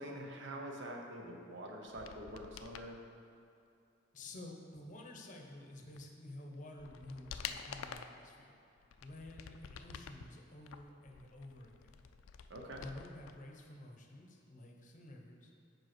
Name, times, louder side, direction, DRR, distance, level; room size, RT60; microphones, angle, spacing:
voice 1, 0.0-3.0 12.5-12.9, right 1 dB, 65° right, 1 dB, 0.8 m, -45 dB
sound 1, 1.9-2.9 6.0-6.1 6.5-8.2 8.8-10.3 10.7-13.3 13.6-13.7, left 7 dB, 90° left, 0.3 m, -48 dB
voice 2, 4.1-8.6 9.0-11.9 12.7-15.5, left 1 dB, 40° left, 1 dB, 0.7 m, -51 dB
5.3 x 4.7 x 5.9 m, 2.6 s
head